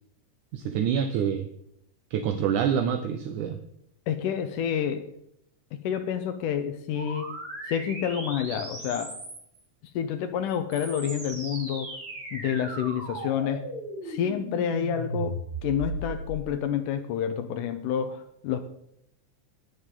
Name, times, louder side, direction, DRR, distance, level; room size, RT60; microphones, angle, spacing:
voice 1, 0.5-1.5 2.1-3.6, right 8 dB, 75° right, 7 dB, 2.1 m, -26 dB
voice 2, 4.1-5.1 5.8-7.3 7.7-9.1 10.0-11.9 12.3-13.6 14.0-18.6, left 8 dB, 80° left, 8 dB, 2.3 m, -29 dB
sound 1, 7.0-9.6 10.5-16.4, right 1 dB, 40° right, 5.8 m, -37 dB
21.0 x 7.2 x 3.7 m, 0.76 s
omnidirectional pair, 3.8 m